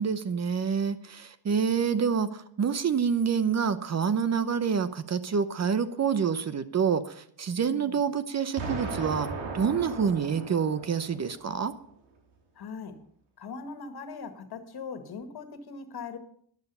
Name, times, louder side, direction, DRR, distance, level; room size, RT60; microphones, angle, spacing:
voice 1, 0.0-9.3 9.5-11.7, right 6 dB, 35° right, 0.8 m, -27 dB
voice 2, 7.6-8.0 12.6-13.0 13.4-16.2, left 5 dB, 55° left, 1.9 m, -40 dB
Explosion, 8.6-11.5, right 3 dB, 80° right, 3.3 m, -37 dB
11.5 x 11.0 x 5.5 m
cardioid pair, 95°, 45 cm